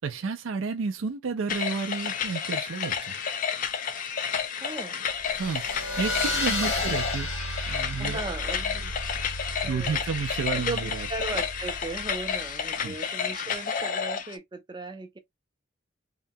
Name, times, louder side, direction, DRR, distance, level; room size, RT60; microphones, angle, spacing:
voice 1, 0.0-3.2 5.4-7.3 7.7-8.2 9.6-11.1 12.8-12.9, right 5 dB, 80° right, 0.4 m, -31 dB
sound 1, 1.5-14.4, left 7 dB, 40° left, 0.3 m, -31 dB
voice 2, 4.6-5.0 6.5-6.7 8.0-8.9 9.6-10.0 10.5-15.2, right 3 dB, 20° right, 0.5 m, -37 dB
sound 2, 5.2-12.3, left 1 dB, 85° left, 1.4 m, -33 dB
2.8 x 2.2 x 2.6 m
head